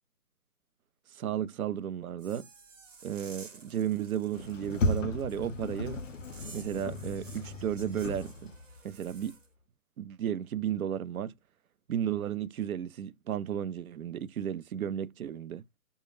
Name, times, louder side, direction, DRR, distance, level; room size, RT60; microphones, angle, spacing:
voice 1, 1.1-2.5 3.0-6.0 6.5-8.5 8.8-9.4 10.0-11.3 11.9-15.6, right 9 dB, 75° right, 0.5 m, -34 dB
sound 1, 2.2-9.5, right 4 dB, 55° right, 1.1 m, -53 dB
Sliding door, 4.3-8.8, left 2 dB, 60° left, 0.6 m, -35 dB
2.1 x 2.1 x 3.1 m
hypercardioid pair, 160°, 43 cm